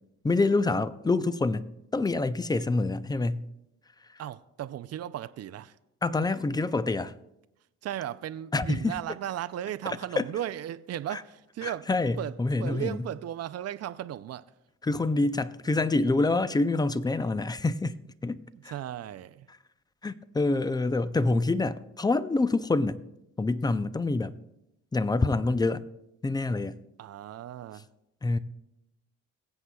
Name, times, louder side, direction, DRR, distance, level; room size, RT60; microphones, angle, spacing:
voice 1, 0.2-1.7 1.9-3.5 4.1-4.2 6.0-7.1 8.5-8.9 10.2-10.3 11.1-11.2 11.6-13.1 14.8-18.0 18.2-18.7 20.0-23.0 23.4-24.3 24.9-25.8 26.2-26.8 28.2-28.4, left 3 dB, 15° left, 0.4 m, -26 dB
voice 2, 4.2-5.8 6.2-6.3 7.8-11.9 12.2-12.3 12.6-14.4 18.5-19.5 27.0-27.9, right 11 dB, 55° right, 0.5 m, -36 dB
22.0 x 8.0 x 2.3 m
cardioid pair, 90°, 30 cm